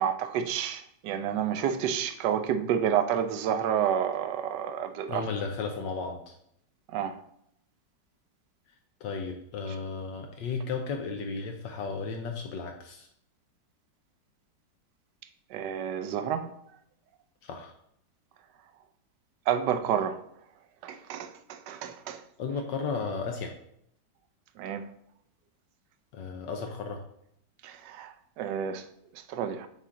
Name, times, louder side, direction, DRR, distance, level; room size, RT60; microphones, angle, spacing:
voice 1, 0.0-5.2 6.9-7.2 15.5-16.5 19.5-20.2 20.8-22.2 24.6-24.9 27.6-28.8 29.3-29.7, right 9 dB, 75° right, 1.1 m, -29 dB
voice 2, 5.1-6.3 9.0-13.1 17.4-17.7 22.4-23.5 26.1-27.0, left 4 dB, 75° left, 1.3 m, -34 dB
7.6 x 3.7 x 3.8 m
omnidirectional pair, 2.0 m